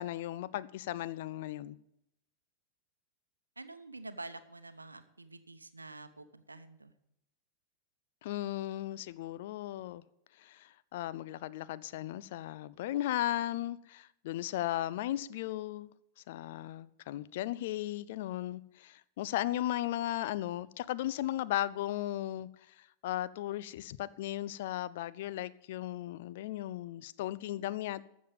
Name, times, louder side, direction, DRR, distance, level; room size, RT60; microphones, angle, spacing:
voice 1, 0.0-1.8 8.2-10.0 10.4-15.9 16.3-28.0, left 13 dB, 55° left, 0.5 m, -36 dB
voice 2, 3.6-7.0, right 2 dB, 80° right, 0.8 m, -47 dB
13.0 x 7.4 x 7.0 m
figure-of-eight pair, 90°, 0 cm